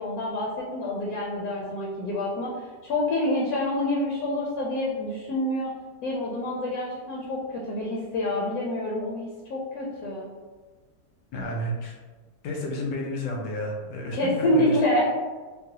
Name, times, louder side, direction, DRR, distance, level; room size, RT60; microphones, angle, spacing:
voice 1, 0.0-5.7 6.0-10.3 14.1-15.0, left 1 dB, 70° left, -3 dB, 1.0 m, -27 dB
voice 2, 11.3-12.0 12.4-14.8, left 1 dB, 90° left, 0 dB, 1.3 m, -31 dB
3.8 x 2.0 x 2.8 m, 1.4 s
omnidirectional pair, 1.7 m